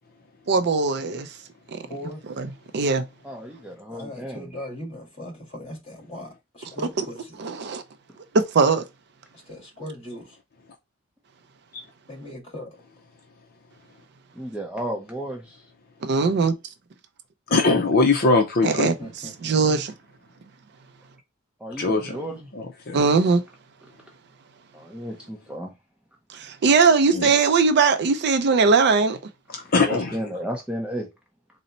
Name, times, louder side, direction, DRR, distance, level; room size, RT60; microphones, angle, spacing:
voice 1, 0.5-1.3 1.7-1.8 2.4-2.5 2.7-3.1 7.0-7.1 7.4-7.8 8.3-8.8 16.0-16.6 18.6-18.9 19.4-19.9 22.9-23.4 26.3-29.2, right 4 dB, 50° right, 0.4 m, -20 dB
voice 2, 1.9-2.2 3.9-7.4 9.5-10.4 12.1-12.8 18.7-19.6, left 1 dB, 30° left, 2.0 m, -39 dB
voice 3, 3.2-4.5 14.4-15.6 21.6-22.5 24.7-25.7 29.8-31.1, equal, 5° right, 0.6 m, -33 dB
voice 4, 17.5-18.9 21.8-22.1 22.5-23.0 27.1-27.3 29.5-30.2, left 3 dB, 45° left, 0.6 m, -21 dB
4.1 x 2.1 x 3.8 m
head